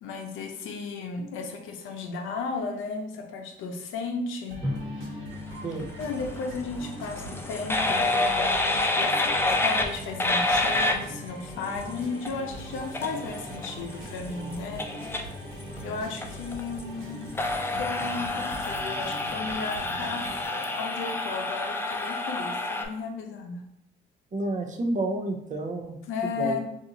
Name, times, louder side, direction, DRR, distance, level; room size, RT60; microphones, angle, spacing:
voice 1, 0.0-4.6 5.0-5.1 6.0-15.3 15.8-17.2 17.7-23.6 26.1-26.6, left 4 dB, 90° left, 4 dB, 0.6 m, -34 dB
sound 1, 4.5-20.5, right 1 dB, 80° right, 1.2 m, -42 dB
Drum, 4.6-7.3, left 1 dB, 20° right, 1.0 m, -37 dB
sound 2, 5.9-22.9, left 2 dB, 10° left, 0.4 m, -29 dB
voice 2, 24.3-26.0 26.2-26.6, right 2 dB, 40° right, 4 dB, 0.5 m, -30 dB
2.7 x 2.4 x 3.9 m, 0.77 s
cardioid pair, 90°, 20 cm